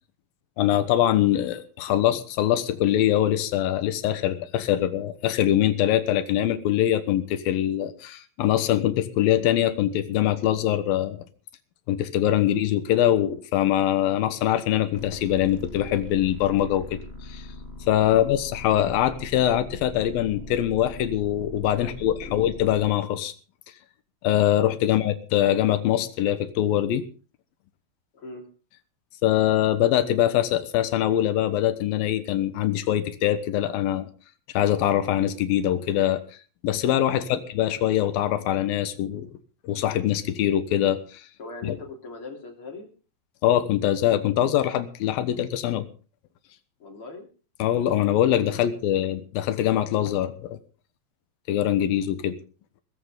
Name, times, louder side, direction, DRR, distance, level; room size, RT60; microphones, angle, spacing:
voice 1, 0.6-11.2 11.9-17.5 17.9-23.3 24.2-27.0 29.2-34.1 34.5-36.2 36.6-39.3 39.6-41.2 41.6-41.7 43.4-45.9 47.6-50.6 51.5-52.4, left 12 dB, 85° left, 10 dB, 3.0 m, -23 dB
voice 2, 1.5-2.0 12.4-12.6 18.1-18.3 21.8-22.0 22.2-22.4 24.8-25.0 28.1-28.5 37.3-37.5 41.4-42.9 46.8-47.3 48.5-49.1, left 3 dB, 35° left, 2 dB, 4.2 m, -41 dB
sound 1, 14.9-22.9, left 2 dB, 20° left, 1.9 m, -41 dB
20.0 x 15.0 x 3.8 m, 0.38 s
omnidirectional pair, 4.1 m